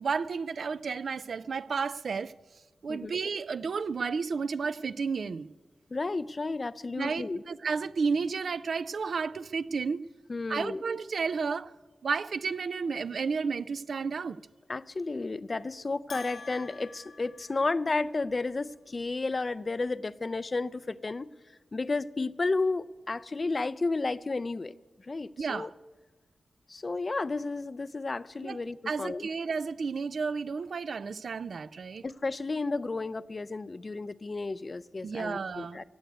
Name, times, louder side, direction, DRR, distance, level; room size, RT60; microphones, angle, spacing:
voice 1, 0.0-2.3 2.8-5.5 7.0-10.0 10.5-11.7 12.0-14.4 25.4-25.7 28.4-28.6 28.9-32.0 35.0-35.8, right 5 dB, 75° right, 0.4 m, -32 dB
voice 2, 5.9-7.4 10.3-10.8 14.7-21.3 21.7-24.7 25.1-25.7 26.7-29.3 32.0-35.8, left 3 dB, 35° left, 0.4 m, -32 dB
Bell, 16.1-18.2, left 4 dB, 85° left, 2.0 m, -47 dB
16.5 x 8.0 x 9.2 m
wide cardioid pair, 115°, 0 cm